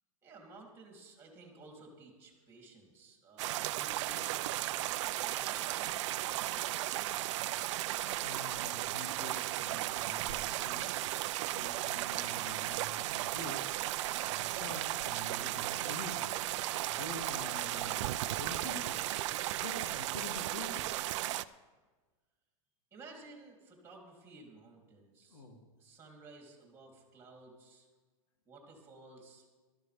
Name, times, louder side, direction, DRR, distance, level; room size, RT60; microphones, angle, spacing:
voice 1, 0.2-6.9 22.9-25.4 25.8-27.9 28.4-29.5, right 3 dB, 15° right, 0 dB, 3.2 m, -55 dB
sound 1, 3.4-21.5, right 15 dB, 55° right, 0.5 m, -35 dB
voice 2, 8.2-10.9 11.5-13.7 14.2-16.4 16.8-19.1 19.5-20.9 25.3-25.6, left 2 dB, 75° left, 2 dB, 2.8 m, -47 dB
18.0 x 13.5 x 3.5 m, 1.3 s
supercardioid pair, 155°, 18 cm